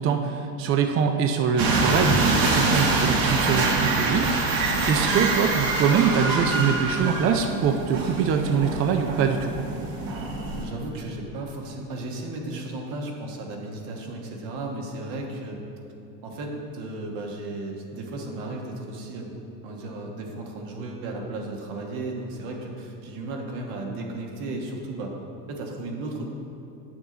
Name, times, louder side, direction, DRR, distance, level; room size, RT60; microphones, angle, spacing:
voice 1, 0.0-9.5, right 6 dB, 30° right, 5 dB, 0.4 m, -24 dB
sound 1, 1.6-10.6, right 3 dB, 50° right, 1.3 m, -25 dB
voice 2, 10.5-15.6 16.2-19.4 19.6-25.1 25.5-26.3, right 2 dB, 65° right, 0 dB, 1.5 m, -34 dB
8.5 x 6.1 x 3.9 m, 2.9 s
supercardioid pair, 120°, 45 cm